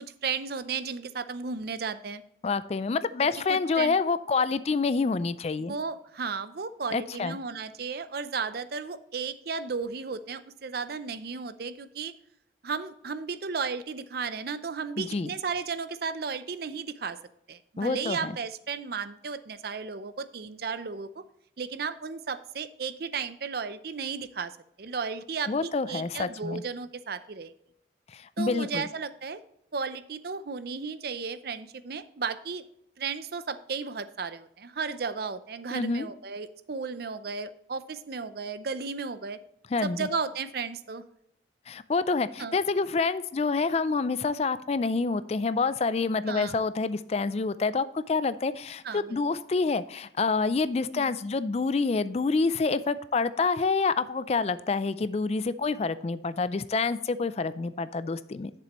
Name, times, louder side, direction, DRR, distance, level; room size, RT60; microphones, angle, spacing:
voice 1, 0.0-2.2 3.5-3.9 5.7-12.1 12.6-17.2 17.5-21.2 21.6-24.5 24.8-27.5 28.4-29.4 29.7-32.6 33.0-39.4 39.8-41.0 42.4-42.6 46.3-46.5 48.8-49.2 50.9-51.2, right 5 dB, 55° right, 13 dB, 0.5 m, -34 dB
voice 2, 2.4-5.7 6.9-7.4 15.0-15.3 17.8-18.3 25.5-26.6 28.1-28.9 35.7-36.1 39.7-40.1 41.7-58.5, left 4 dB, 35° left, 14 dB, 0.3 m, -27 dB
11.0 x 6.8 x 3.0 m, 0.76 s
head